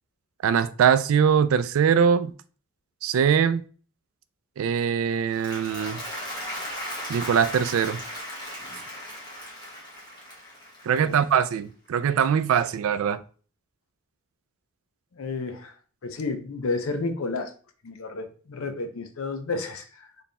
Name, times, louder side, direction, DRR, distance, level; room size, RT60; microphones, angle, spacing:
voice 1, 0.4-2.3 3.0-3.6 4.6-6.0 7.1-8.0 10.8-13.2, right 7 dB, 70° right, 0.3 m, -22 dB
Applause, 5.2-11.5, equal, 20° left, 1.3 m, -37 dB
voice 2, 15.2-15.7 16.0-17.5 17.8-20.1, left 3 dB, 70° left, 0.6 m, -31 dB
4.1 x 3.4 x 2.2 m
head